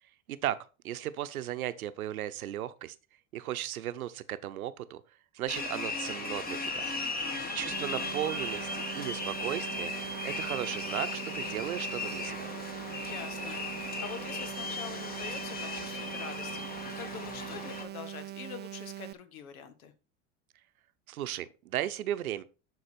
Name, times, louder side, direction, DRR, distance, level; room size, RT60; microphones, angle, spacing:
voice 1, 0.3-0.6 0.8-2.9 3.3-5.0 5.3-6.9 7.5-9.9 10.2-12.5 21.1-22.4, right 12 dB, 85° right, 0.8 m, -36 dB
sound 1, 5.5-17.8, left 3 dB, 20° left, 1.7 m, -37 dB
voice 2, 7.2-7.7 13.0-19.9, left 7 dB, 80° left, 1.5 m, -45 dB
sound 2, 7.7-19.1, right 13 dB, 25° right, 0.5 m, -42 dB
11.5 x 4.2 x 4.3 m
hypercardioid pair, 90°, 42 cm